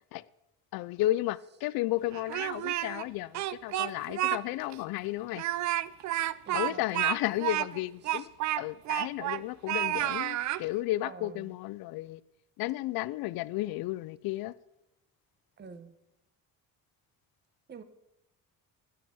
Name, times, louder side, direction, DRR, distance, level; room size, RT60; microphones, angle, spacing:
voice 1, 0.7-5.4 6.5-8.3 8.6-12.2 12.6-14.5, left 16 dB, 75° left, 0.5 m, -33 dB
Speech, 2.1-3.0 3.3-4.4 4.7-4.8 5.3-9.4 9.7-10.6, right 14 dB, 50° right, 0.5 m, -30 dB
voice 2, 6.4-6.8 8.0-8.3 11.0-11.5 15.6-15.9 17.7-17.8, right 5 dB, 30° right, 0.9 m, -47 dB
9.2 x 7.7 x 6.8 m
cardioid pair, 115°, 36 cm